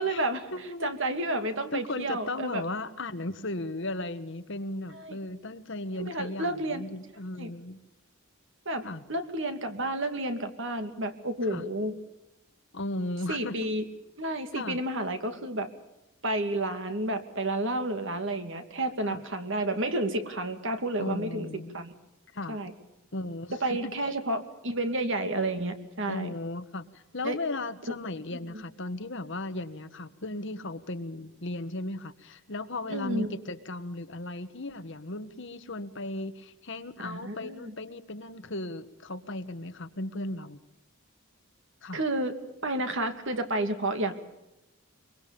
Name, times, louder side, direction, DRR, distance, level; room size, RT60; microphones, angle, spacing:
voice 1, 0.0-0.5 0.8-2.6 4.9-5.2 6.0-6.8 7.4-7.5 8.7-8.8 9.1-11.9 13.3-13.8 14.2-15.7 16.2-21.5 21.7-21.9 22.5-22.7 23.5-26.3 27.2-27.4 28.5-28.6 32.9-33.4 37.0-37.7 41.9-42.3 42.6-44.2, right 1 dB, 60° right, 7 dB, 2.6 m, -31 dB
voice 2, 0.5-0.9 1.7-7.8 8.8-9.0 11.5-11.6 12.7-13.6 14.5-14.8 19.0-19.2 21.0-21.7 22.3-22.6 23.1-23.9 26.1-40.6 41.8-42.0, left 2 dB, 55° left, 10 dB, 1.5 m, -36 dB
24.0 x 23.5 x 7.0 m, 0.95 s
head